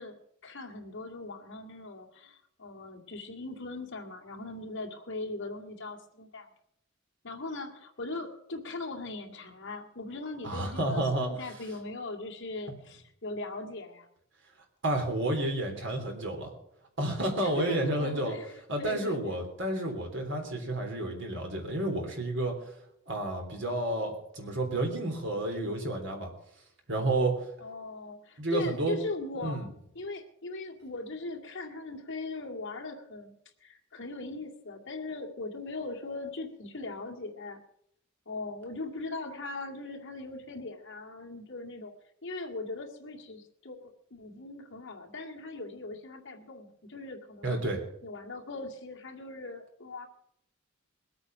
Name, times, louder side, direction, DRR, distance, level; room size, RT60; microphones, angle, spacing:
voice 1, 0.0-6.5 7.2-14.1 17.4-19.4 27.6-29.6 29.9-33.3 33.6-37.6 38.3-41.9 42.2-47.6 48.0-50.1, left 2 dB, 60° left, 1 dB, 2.3 m, -40 dB
voice 2, 10.4-11.3 14.8-16.5 17.0-18.3 18.7-22.5 23.1-26.3 26.9-27.5 28.4-29.0 29.4-29.7 47.4-47.8, right 1 dB, 60° right, 2 dB, 3.5 m, -30 dB
20.5 x 8.7 x 5.8 m, 0.74 s
head